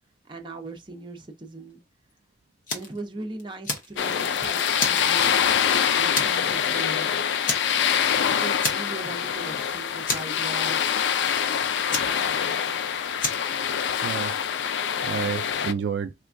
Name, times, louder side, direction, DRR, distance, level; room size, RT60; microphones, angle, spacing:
voice 1, 0.3-1.8 2.7-5.5 5.9-7.1 8.2-11.1 11.9-12.9, right 2 dB, 25° right, 0.6 m, -39 dB
Fire, 2.7-3.0 3.4-4.3 4.8-5.7 6.1-6.6 6.8-7.0 7.4-8.2 8.6-9.2 9.5-9.6 10.1-10.9 11.9-12.7 13.2-13.6, left 3 dB, 45° left, 0.8 m, -30 dB
sound 1, 4.0-15.7, left 8 dB, 75° left, 0.4 m, -25 dB
voice 2, 14.0-16.1, right 6 dB, 65° right, 0.3 m, -31 dB
4.3 x 2.2 x 2.5 m
head